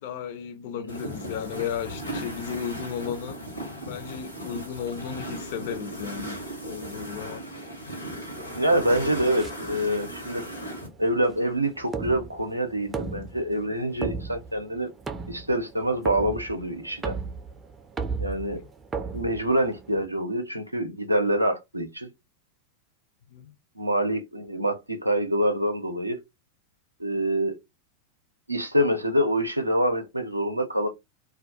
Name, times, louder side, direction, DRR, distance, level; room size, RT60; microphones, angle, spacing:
voice 1, 0.0-3.4 3.9-6.4 6.6-7.4 18.3-18.6 23.3-23.5, left 8 dB, 50° left, 0.4 m, -34 dB
sound 1, 0.9-10.9, equal, 90° left, 0.9 m, -37 dB
voice 2, 8.5-10.4 11.0-14.9 15.3-17.2 18.2-18.6 19.1-22.1 23.8-26.2 27.0-27.6 28.5-30.9, right 1 dB, 85° right, 0.5 m, -26 dB
sound 2, 9.4-20.1, right 4 dB, 15° right, 0.4 m, -36 dB
2.2 x 2.1 x 2.7 m
figure-of-eight pair, 90°, 0 cm